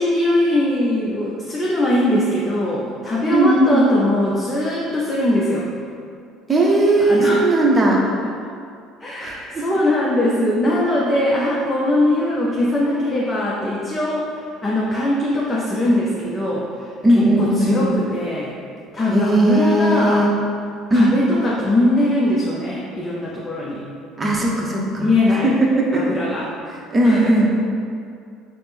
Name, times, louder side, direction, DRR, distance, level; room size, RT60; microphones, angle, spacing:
voice 1, 0.0-5.7 7.0-7.5 9.0-18.5 18.9-20.3 20.9-23.8 25.0-25.5 25.9-26.5 27.0-27.3, left 1 dB, 25° left, -5 dB, 0.5 m, -21 dB
voice 2, 3.3-3.9 6.5-8.0 9.2-9.4 17.0-17.9 19.1-20.3 20.9-21.1 24.2-25.1 25.4-26.1 26.9-27.5, right 1 dB, 25° right, -3 dB, 0.7 m, -17 dB
4.1 x 2.0 x 3.3 m, 2.4 s
supercardioid pair, 80°, 0 cm